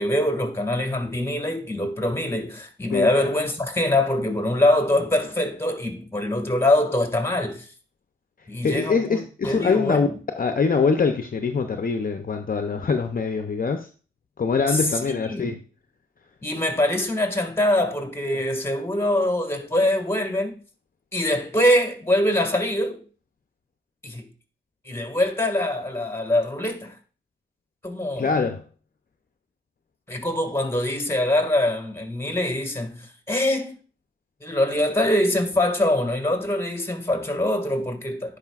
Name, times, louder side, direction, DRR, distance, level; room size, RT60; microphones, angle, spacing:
voice 1, 0.0-7.7 8.5-10.1 14.7-15.6 16.4-20.6 21.1-23.0 24.0-24.3 24.9-26.9 27.8-28.4 30.1-33.8 34.4-38.4, left 1 dB, 15° left, 2.0 m, -24 dB
voice 2, 8.6-10.1 10.4-13.9 14.4-15.6 28.2-28.6, left 5 dB, 50° left, 0.7 m, -23 dB
10.5 x 4.9 x 2.4 m
cardioid pair, 50°, 19 cm